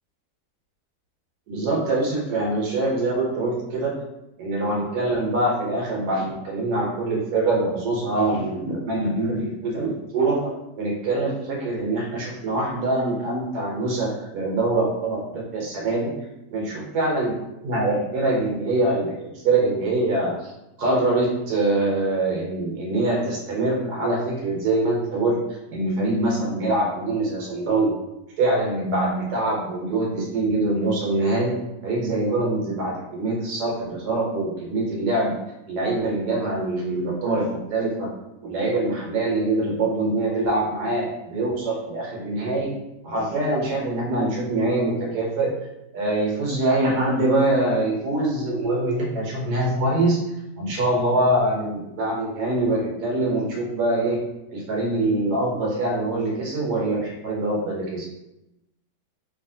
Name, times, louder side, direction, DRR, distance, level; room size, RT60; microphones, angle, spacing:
voice 1, 1.5-4.0 4.4-10.5 10.8-16.1 16.5-17.3 17.6-20.5 20.8-25.4 25.7-27.9 28.4-31.6 31.8-35.3 35.7-38.1 38.4-42.7 43.0-45.5 45.9-50.2 50.6-54.2 54.5-58.1, right 2 dB, 65° right, -3 dB, 1.3 m, -24 dB
2.8 x 2.7 x 2.6 m, 0.92 s
omnidirectional pair, 1.8 m